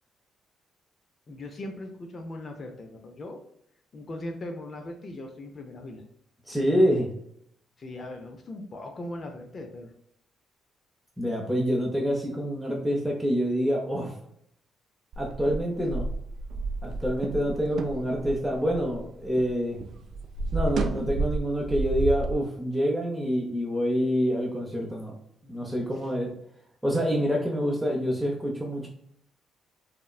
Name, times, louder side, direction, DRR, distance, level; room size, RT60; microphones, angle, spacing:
voice 1, 1.3-3.4 3.9-6.0 7.8-9.9 15.8-15.9, left 1 dB, 45° left, 4 dB, 0.5 m, -39 dB
voice 2, 6.5-7.1 11.2-14.1 15.2-16.1 16.8-19.8 20.5-25.1 25.4-26.3 26.8-28.9, equal, ahead, -1 dB, 0.7 m, -26 dB
sound 1, 15.1-19.5 19.8-22.3, right 3 dB, 65° right, 0.3 m, -31 dB
3.5 x 2.1 x 2.3 m, 0.71 s
cardioid pair, 90°, 0 cm